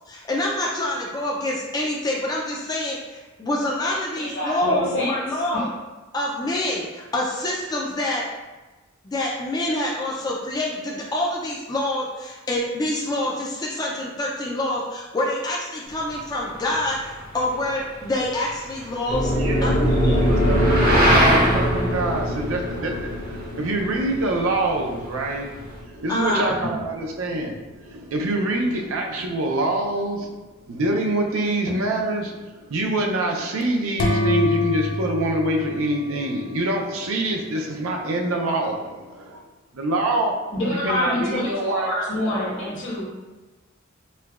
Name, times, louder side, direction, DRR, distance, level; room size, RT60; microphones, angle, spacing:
voice 1, 0.1-5.7 6.1-8.3 9.0-19.3 19.6-20.2 26.1-26.7, left 1 dB, 20° left, -3 dB, 0.4 m, -26 dB
voice 2, 4.2-5.7 40.5-43.1, left 1 dB, 65° left, -6 dB, 1.3 m, -26 dB
sound 1, 15.9-25.8, right 1 dB, 45° right, 0.7 m, -26 dB
sound 2, 19.1-27.3, equal, 40° left, 0.7 m, -23 dB
voice 3, 19.3-25.5 25.9-30.3 30.7-39.4 39.7-40.3 40.8-41.9, right 1 dB, 85° right, 1 dB, 0.5 m, -25 dB
sound 3, 34.0-36.8, left 1 dB, 85° left, 0.4 m, -24 dB
4.4 x 2.2 x 2.3 m, 1.2 s
head